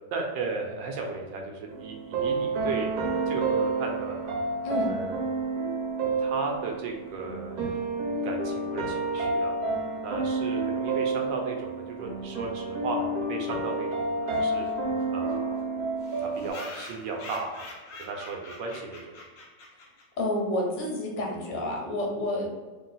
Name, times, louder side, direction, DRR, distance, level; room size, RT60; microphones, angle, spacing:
voice 1, 0.1-2.9 3.3-4.4 4.9-5.4 6.0-7.6 8.2-9.6 10.0-14.7 15.1-15.9 16.2-17.7 18.0-19.1, right 4 dB, 80° right, 1 dB, 1.4 m, -35 dB
sound 1, 1.7-16.5, right 3 dB, 65° right, 1.1 m, -30 dB
sound 2, 14.3-14.4 14.6-14.7 15.0-15.1 15.3-15.4 16.0-20.2, left 2 dB, 55° left, 1.0 m, -44 dB
voice 2, 20.2-22.5, left 1 dB, 85° left, -1 dB, 1.6 m, -29 dB
3.7 x 2.5 x 3.9 m, 1.3 s
omnidirectional pair, 2.0 m